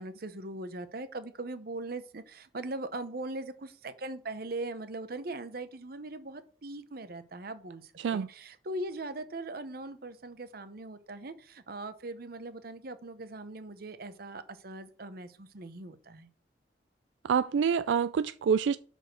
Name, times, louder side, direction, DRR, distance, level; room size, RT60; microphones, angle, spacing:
voice 1, 0.0-16.3, right 2 dB, 55° right, 0.8 m, -40 dB
voice 2, 8.0-8.3 17.2-18.8, right 7 dB, 90° right, 0.3 m, -27 dB
6.3 x 5.4 x 6.3 m
head